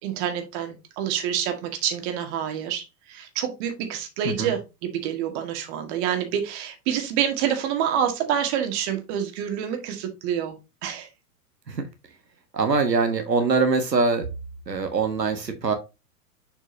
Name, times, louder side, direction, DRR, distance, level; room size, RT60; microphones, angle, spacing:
voice 1, 0.0-10.6 10.8-11.1, right 9 dB, 40° right, 6 dB, 2.0 m, -27 dB
voice 2, 12.5-14.3 14.7-15.7, right 4 dB, 90° right, 6 dB, 1.4 m, -23 dB
6.8 x 6.1 x 2.8 m, 0.25 s
figure-of-eight pair, 100°, 48 cm